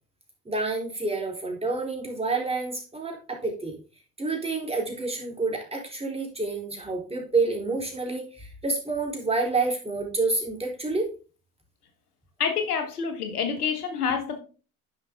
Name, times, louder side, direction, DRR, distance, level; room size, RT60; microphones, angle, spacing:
voice 1, 0.5-3.8 4.2-11.1, right 3 dB, 15° right, 0 dB, 3.7 m, -28 dB
voice 2, 12.4-14.4, left 6 dB, 90° left, 4 dB, 1.5 m, -27 dB
9.8 x 5.8 x 3.7 m, 0.36 s
hypercardioid pair, 65°, 44 cm